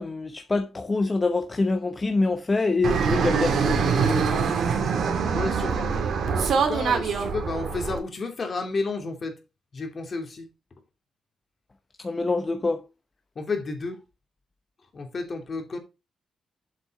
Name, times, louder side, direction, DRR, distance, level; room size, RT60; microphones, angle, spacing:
voice 1, 0.0-4.5 12.0-12.8, left 3 dB, 25° left, 0.8 m, -26 dB
Fixed-wing aircraft airplane, 2.8-8.0, right 6 dB, 75° right, 2.2 m, -24 dB
voice 2, 5.3-9.3 9.7-10.5 13.3-14.0 14.9-15.8, left 3 dB, 45° left, 2.7 m, -32 dB
7.6 x 5.8 x 5.3 m
cardioid pair, 100°, 0 cm